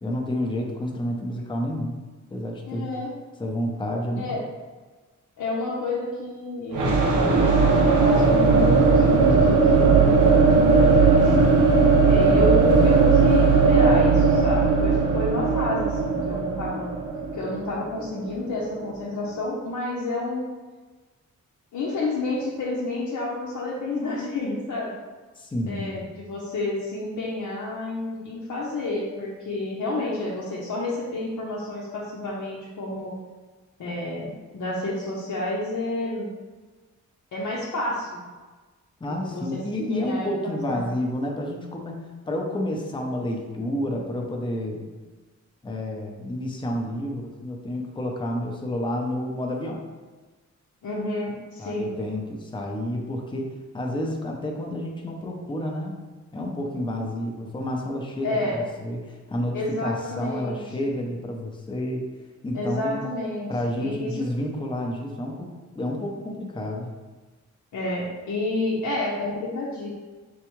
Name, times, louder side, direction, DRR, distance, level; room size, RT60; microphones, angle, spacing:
voice 1, 0.0-2.0 2.3-2.9 3.4-4.3 25.4-25.9 39.0-42.0 42.3-44.9 45.6-49.8 51.6-53.4 53.7-56.0 56.3-62.1 62.4-63.0 63.5-66.9, left 1 dB, 15° left, 0 dB, 0.5 m, -30 dB
voice 2, 2.7-3.1 4.2-4.4 5.4-7.5 8.0-11.4 12.0-16.9 17.3-20.5 21.7-24.9 25.7-33.1 33.8-34.3 34.5-36.3 37.3-38.2 39.0-39.6 39.9-40.9 50.8-51.9 58.2-58.6 59.5-60.6 62.5-63.5 63.8-64.3 67.7-69.9, left 2 dB, 85° left, -5 dB, 0.8 m, -30 dB
sound 1, 6.7-18.5, right 4 dB, 90° right, 0.7 m, -18 dB
4.6 x 3.3 x 3.0 m, 1.3 s
wide cardioid pair, 145°, 30 cm